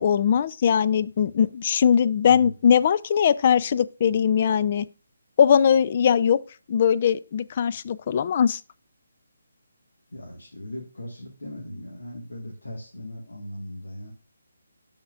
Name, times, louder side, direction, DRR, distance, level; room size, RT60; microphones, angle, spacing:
voice 1, 0.0-4.9 5.4-6.4 6.7-8.6, left 8 dB, 40° left, 0.4 m, -20 dB
voice 2, 10.1-14.1, left 1 dB, 80° left, 1.6 m, -38 dB
13.0 x 4.4 x 2.4 m
figure-of-eight pair, 150°, 0 cm